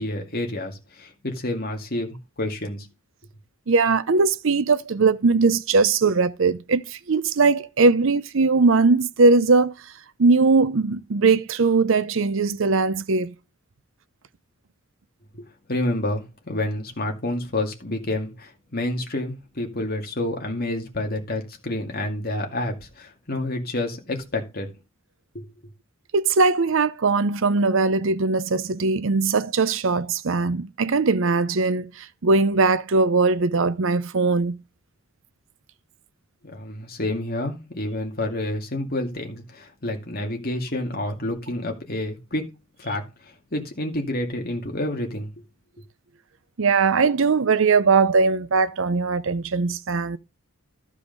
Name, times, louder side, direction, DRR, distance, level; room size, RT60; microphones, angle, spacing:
voice 1, 0.0-2.9 15.3-24.7 25.3-25.4 36.4-42.5 42.8-45.3, left 1 dB, 45° left, 2.2 m, -29 dB
voice 2, 3.7-9.7 10.2-13.3 26.1-34.6 46.6-50.2, right 4 dB, 60° right, 0.6 m, -20 dB
13.0 x 4.9 x 5.3 m
head